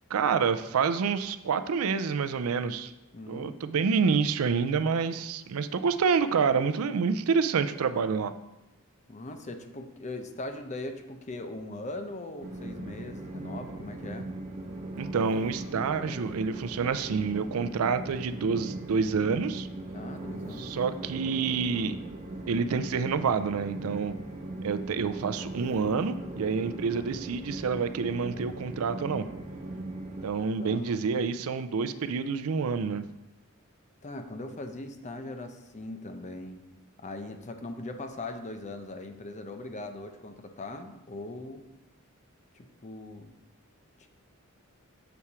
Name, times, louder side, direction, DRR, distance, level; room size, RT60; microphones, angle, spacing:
voice 1, 0.1-2.9 3.3-8.3 15.0-19.7 20.6-22.0 22.5-24.1 24.6-29.3 30.2-33.0, right 5 dB, 90° right, 11 dB, 0.4 m, -28 dB
voice 2, 3.1-3.6 9.1-14.3 19.9-21.0 30.6-30.9 34.0-36.7 37.0-41.7 42.5-43.4 44.0-44.1, left 2 dB, 35° left, 6 dB, 0.6 m, -40 dB
Train, 12.4-30.3, right 1 dB, 35° right, 0.9 m, -39 dB
7.0 x 4.3 x 4.8 m, 0.96 s
head